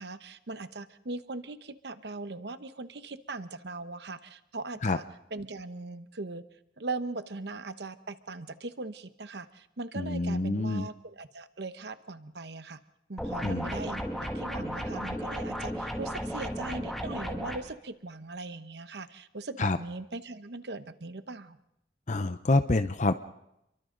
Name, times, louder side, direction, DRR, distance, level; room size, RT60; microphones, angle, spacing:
voice 1, 0.0-5.0 5.3-6.4 6.8-12.8 13.1-21.6, right 3 dB, 70° right, 11 dB, 1.0 m, -40 dB
voice 2, 10.0-10.9 13.4-13.7 19.6-19.8 22.1-23.1, left 2 dB, 45° left, 10 dB, 0.7 m, -27 dB
sound 1, 13.2-17.6, equal, ahead, 2.4 m, -34 dB
29.5 x 23.5 x 3.9 m, 0.81 s
head